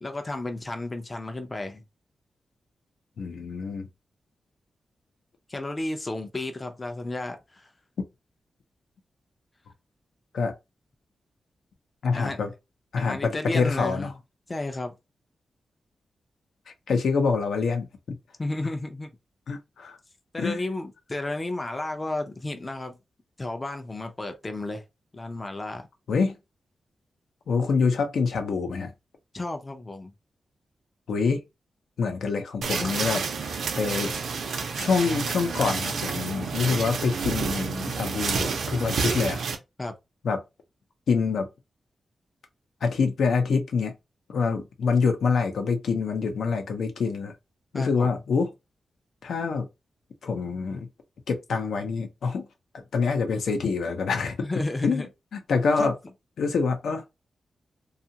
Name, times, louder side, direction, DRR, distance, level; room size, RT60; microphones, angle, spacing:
voice 1, 0.0-1.8 5.5-7.7 12.1-12.4 13.0-14.1 14.5-14.9 18.4-19.1 20.3-23.0 23.4-24.8 25.1-25.9 29.3-30.1 39.8-39.9 47.7-48.2 54.4-55.1 55.8-55.9, left 2 dB, 20° left, 0.4 m, -32 dB
voice 2, 3.2-3.9 10.3-10.5 12.0-12.5 12.9-14.1 16.9-18.2 19.5-20.0 20.4-20.6 26.1-26.3 27.5-28.9 31.1-31.4 32.0-34.2 34.7-39.4 40.2-40.4 41.1-41.5 42.8-43.9 44.3-47.3 47.7-48.5 49.2-49.7 50.2-50.9 51.3-52.5 52.7-54.4 54.8-55.1 55.3-55.9 56.4-57.0, left 5 dB, 80° left, 0.7 m, -26 dB
sound 1, 32.6-39.6, right 5 dB, 90° right, 0.6 m, -29 dB
2.6 x 2.4 x 2.8 m
wide cardioid pair, 145°, 0 cm